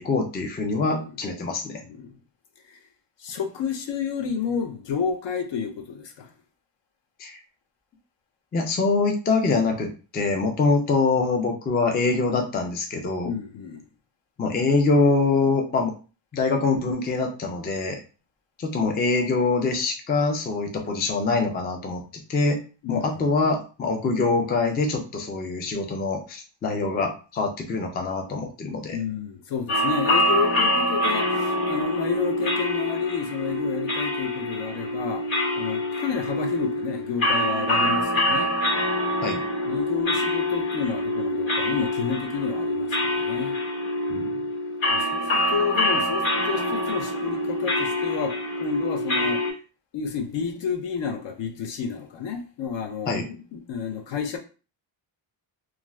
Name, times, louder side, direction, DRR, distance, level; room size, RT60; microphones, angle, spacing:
voice 1, 0.0-1.8 7.2-7.4 8.5-13.3 14.4-15.9 16.3-18.0 18.6-22.0 22.3-22.6 22.9-29.0 39.2-39.4 44.1-44.3 53.1-53.2, left 3 dB, 25° left, 0.3 m, -24 dB
voice 2, 1.8-2.2 2.7-2.8 3.2-6.3 13.2-13.8 22.8-23.3 28.9-35.3 35.5-38.5 39.6-43.6 44.9-49.4 49.9-54.4, left 6 dB, 65° left, 0.7 m, -30 dB
sound 1, 29.7-49.5, left 1 dB, 85° left, 1.4 m, -25 dB
2.4 x 2.4 x 3.0 m
cardioid pair, 150°, 47 cm